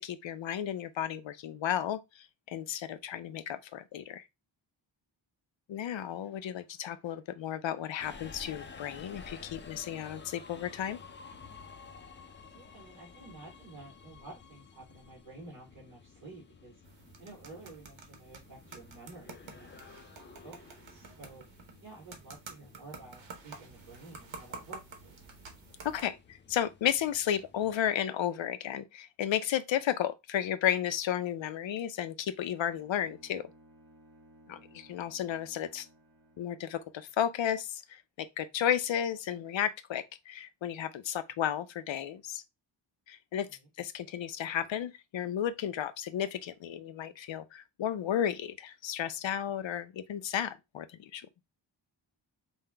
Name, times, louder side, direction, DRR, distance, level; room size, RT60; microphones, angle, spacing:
voice 1, 0.0-4.2 5.7-11.0 25.8-33.5 34.5-35.9 36.4-42.4 43.1-43.5 43.8-51.3, left 10 dB, 80° left, 0.6 m, -33 dB
Subway metro underground, 8.0-27.9, left 5 dB, 25° left, 0.4 m, -53 dB
voice 2, 12.5-16.7 17.2-19.8 20.4-20.5 20.8-21.5 21.8-25.2 34.9-35.0, right 2 dB, 40° right, 2.3 m, -51 dB
sound 1, 16.8-26.0, right 5 dB, 90° right, 1.0 m, -50 dB
Bowed string instrument, 32.7-36.7, right 1 dB, 60° right, 1.8 m, -59 dB
5.5 x 2.2 x 3.3 m
wide cardioid pair, 170°, 45 cm